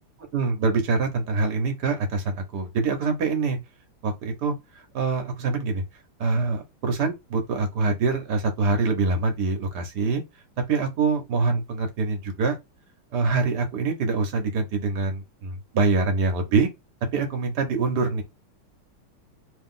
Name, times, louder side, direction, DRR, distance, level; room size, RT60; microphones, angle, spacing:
voice 1, 0.3-3.6 4.0-4.5 4.9-5.8 6.2-10.2 10.7-12.6 13.1-16.7 17.1-18.2, right 4 dB, 55° right, 1.5 m, -24 dB
3.3 x 3.0 x 3.8 m
omnidirectional pair, 2.4 m